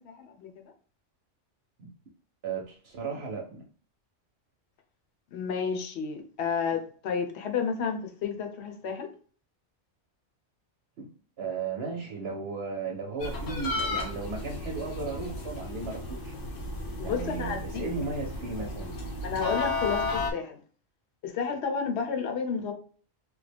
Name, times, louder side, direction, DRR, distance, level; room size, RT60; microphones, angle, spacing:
voice 1, 0.0-0.6 5.3-9.1 17.0-17.8 19.2-20.6 21.2-22.7, left 6 dB, 65° left, 5 dB, 0.9 m, -31 dB
voice 2, 2.4-3.6 11.0-11.1 11.4-16.3 17.0-18.9, right 4 dB, 65° right, 0 dB, 0.9 m, -35 dB
sound 1, 13.2-20.3, left 2 dB, 90° left, 1.1 m, -34 dB
3.3 x 2.1 x 3.3 m, 0.43 s
omnidirectional pair, 1.2 m